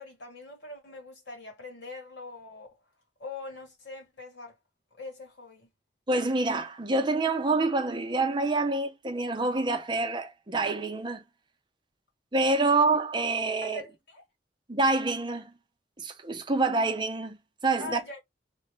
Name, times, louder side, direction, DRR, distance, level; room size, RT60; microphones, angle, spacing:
voice 1, 0.0-2.7 3.2-4.6 4.9-5.7 12.7-12.8 13.6-14.2 17.8-18.2, left 2 dB, 85° left, 1.6 m, -42 dB
voice 2, 6.1-11.2 12.3-13.8 14.7-15.5 16.0-17.4 17.6-18.0, right 3 dB, 25° right, 0.5 m, -27 dB
3.1 x 2.2 x 3.1 m
head